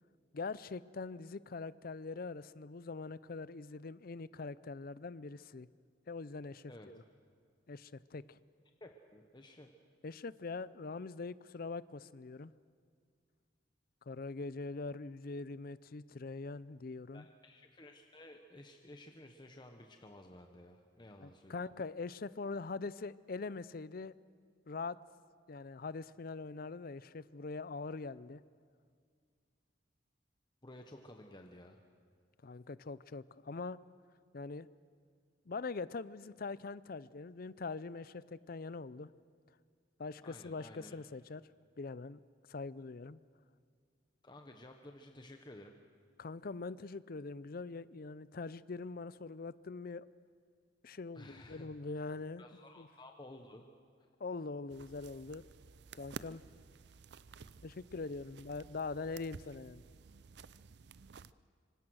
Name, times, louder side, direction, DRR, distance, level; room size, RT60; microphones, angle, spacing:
voice 1, 0.3-5.7 6.1-7.0 7.7-8.4 10.0-12.5 14.1-17.3 21.2-24.1 24.7-25.0 25.5-28.4 32.4-33.8 34.3-34.7 35.5-39.1 40.0-41.4 41.8-42.2 42.5-43.2 46.2-50.1 50.8-52.4 52.8-52.9 54.2-55.4 55.9-56.4 57.6-59.8, left 3 dB, 50° left, 18 dB, 0.5 m, -43 dB
voice 2, 8.8-9.7 17.1-21.6 30.6-31.8 40.2-41.0 44.2-45.7 51.1-51.7 52.4-53.7 54.0-54.1, left 1 dB, 25° left, 4 dB, 1.1 m, -54 dB
sound 1, 54.7-61.3, right 5 dB, 60° right, 0.5 m, -53 dB
25.5 x 24.5 x 6.4 m, 2.1 s
head